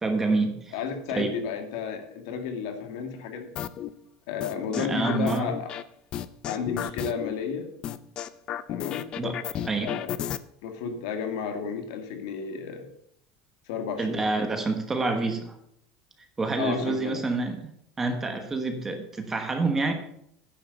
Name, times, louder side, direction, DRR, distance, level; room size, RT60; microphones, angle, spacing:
voice 1, 0.0-0.7 1.1-1.3 4.8-5.5 9.2-10.0 14.0-15.5 16.4-17.7 18.0-19.9, right 3 dB, 15° right, 6 dB, 1.1 m, -27 dB
voice 2, 0.7-3.6 4.3-5.7 6.5-7.7 8.7-9.1 9.8-10.1 10.6-12.9 13.7-14.5 16.6-17.3, left 6 dB, 70° left, 5 dB, 2.0 m, -32 dB
sound 1, 3.6-3.9 4.4-5.8 6.1-7.3 7.8-10.4, left 10 dB, 30° left, 0.4 m, -32 dB
9.7 x 6.8 x 6.6 m, 0.71 s
cardioid pair, 170°, 3 cm